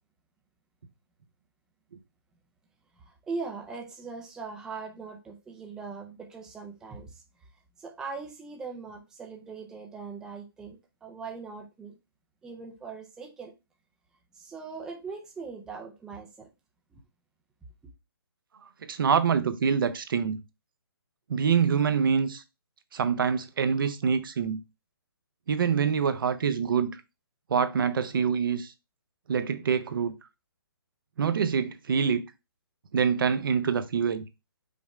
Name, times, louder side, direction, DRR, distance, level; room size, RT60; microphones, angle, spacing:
voice 1, 3.0-7.2 7.8-12.0 12.4-13.5 14.3-16.5 16.9-17.0, right 4 dB, 5° right, 0.5 m, -40 dB
voice 2, 18.9-20.4 21.3-22.4 22.9-24.6 25.5-27.0 27.5-28.7 29.3-30.1 31.2-32.2 32.9-34.2, right 6 dB, 60° right, 0.7 m, -25 dB
5.3 x 2.1 x 4.7 m
hypercardioid pair, 150°, 13 cm